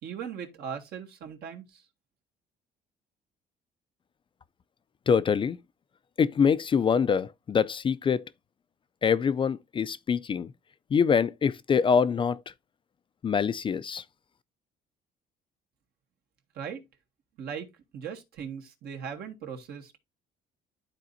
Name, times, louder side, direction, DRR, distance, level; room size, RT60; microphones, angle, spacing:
voice 1, 0.0-1.8 16.5-16.8 17.4-20.0, right 7 dB, 70° right, 1.7 m, -39 dB
voice 2, 5.1-5.6 6.2-8.2 9.0-10.5 10.9-12.4 13.2-14.0, left 6 dB, 30° left, 0.4 m, -24 dB
12.0 x 4.1 x 2.6 m
cardioid pair, 110°, 17 cm